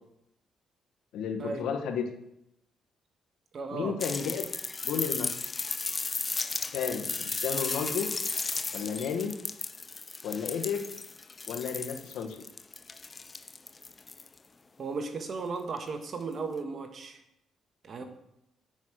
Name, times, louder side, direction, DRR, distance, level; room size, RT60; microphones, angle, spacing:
voice 1, 1.1-2.1 3.7-4.5 4.8-5.4 6.7-8.1 8.7-9.3 10.2-10.9 11.5-12.4, left 6 dB, 85° left, 6 dB, 1.4 m, -32 dB
voice 2, 3.5-4.0 14.8-17.2 17.8-18.0, right 4 dB, 50° right, 6 dB, 1.6 m, -35 dB
sound 1, 4.0-14.4 15.8-15.9, left 4 dB, 30° left, 0.6 m, -35 dB
8.9 x 6.3 x 7.4 m, 0.81 s
cardioid pair, 90°, 0 cm